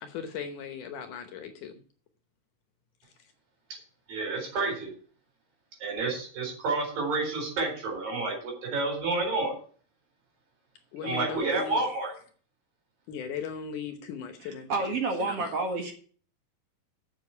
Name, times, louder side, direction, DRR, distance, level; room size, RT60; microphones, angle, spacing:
voice 1, 0.0-1.7 10.9-11.8 13.1-14.7 15.2-15.5, left 7 dB, 70° left, 6 dB, 2.3 m, -38 dB
voice 2, 4.1-4.9 5.8-9.5 11.0-12.1, right 3 dB, 70° right, 1 dB, 6.0 m, -29 dB
voice 3, 14.4-15.9, right 3 dB, 50° right, 2 dB, 2.3 m, -30 dB
7.6 x 7.0 x 8.2 m, 0.44 s
omnidirectional pair, 4.1 m